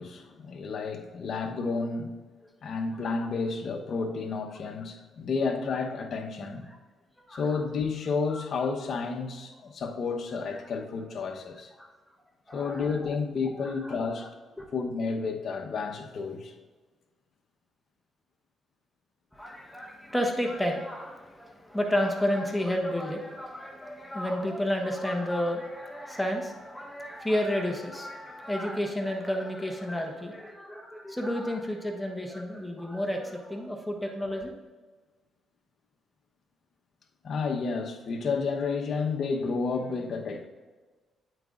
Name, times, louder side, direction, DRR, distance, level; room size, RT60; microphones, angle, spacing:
voice 1, 0.0-2.2 2.6-6.7 7.3-11.7 12.5-14.3 14.7-16.5 37.2-40.5, left 4 dB, 55° left, 4 dB, 1.0 m, -31 dB
voice 2, 12.5-13.1 13.6-14.3 14.6-14.7 19.3-34.5, equal, 5° left, 2 dB, 1.1 m, -31 dB
9.1 x 9.0 x 2.5 m, 1.3 s
cardioid pair, 90°, 0 cm